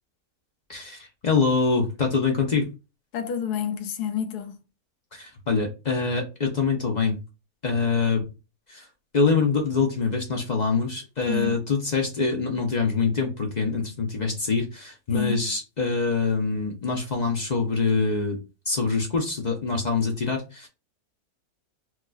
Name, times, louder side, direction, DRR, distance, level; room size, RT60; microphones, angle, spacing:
voice 1, 0.7-2.7 5.1-7.2 7.6-8.3 8.7-8.9 9.1-18.4 18.7-20.7, left 4 dB, 55° left, 0.5 m, -25 dB
voice 2, 3.1-4.6 11.3-11.6 15.1-15.5, left 9 dB, 85° left, 1.2 m, -28 dB
4.5 x 2.3 x 2.3 m
omnidirectional pair, 1.6 m